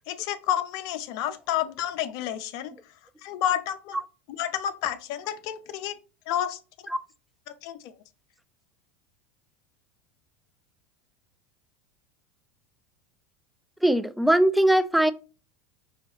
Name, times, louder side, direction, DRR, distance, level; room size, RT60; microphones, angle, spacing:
voice 1, 0.1-2.7 3.2-4.0 4.4-5.9 6.3-6.6 7.5-7.9, left 11 dB, 60° left, 0.6 m, -30 dB
voice 2, 13.8-15.1, right 1 dB, ahead, 0.3 m, -20 dB
5.7 x 2.3 x 2.8 m
hypercardioid pair, 95°, 7 cm